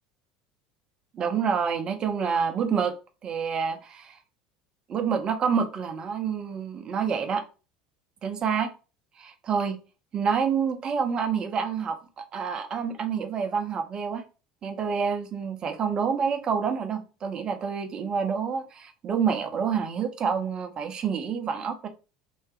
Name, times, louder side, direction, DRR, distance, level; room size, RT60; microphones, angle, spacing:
voice 1, 1.1-3.0 3.2-4.2 4.9-7.4 8.2-8.7 9.2-9.8 10.1-14.2 14.6-21.9, right 6 dB, 35° right, 0.8 m, -28 dB
2.8 x 2.7 x 3.4 m
hypercardioid pair, 70°, 2 cm